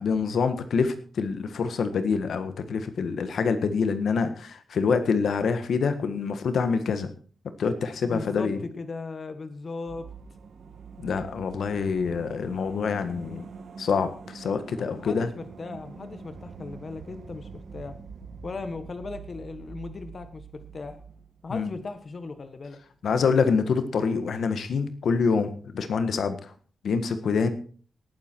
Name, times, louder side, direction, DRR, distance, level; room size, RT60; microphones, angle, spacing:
voice 1, 0.0-7.1 7.4-8.6 11.0-13.4 13.8-15.3 21.5-21.7 23.0-26.5 26.8-27.5, left 5 dB, 70° left, 10 dB, 1.5 m, -26 dB
voice 2, 8.0-10.1 14.9-18.0 18.4-21.0 21.4-22.8, left 3 dB, 40° left, 9 dB, 1.4 m, -37 dB
sound 1, 9.9-22.3 22.5-22.6, right 5 dB, 65° right, 2.2 m, -45 dB
18.5 x 9.7 x 4.5 m, 0.43 s
wide cardioid pair, 145°, 0 cm